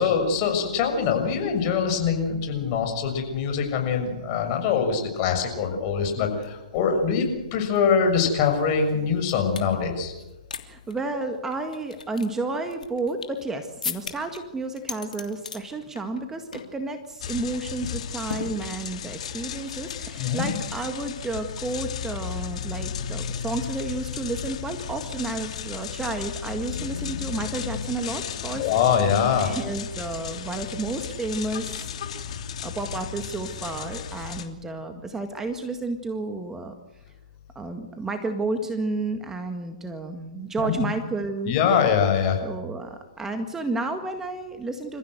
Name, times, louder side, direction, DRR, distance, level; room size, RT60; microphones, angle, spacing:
voice 1, 0.0-7.3 7.5-10.1 20.2-20.5 28.5-29.5 40.6-40.8 41.5-42.4, left 6 dB, 40° left, 4 dB, 6.6 m, -23 dB
sound 1, 6.4-6.5 6.7-9.7 10.2-10.6 10.9-11.0 11.5-13.4 13.8-14.4 14.8-15.6 16.0-16.3 16.5-16.8 17.1-17.3 18.3-19.1, left 5 dB, 80° left, 3.0 m, -37 dB
voice 2, 10.6-28.7 29.4-32.3 32.6-36.7 37.6-41.6 42.4-45.0, right 3 dB, 10° right, 6 dB, 1.9 m, -31 dB
sound 2, 17.2-34.5, left 8 dB, 60° left, 3.1 m, -34 dB
28.5 x 15.5 x 8.0 m, 1.1 s
hypercardioid pair, 130°, 4 cm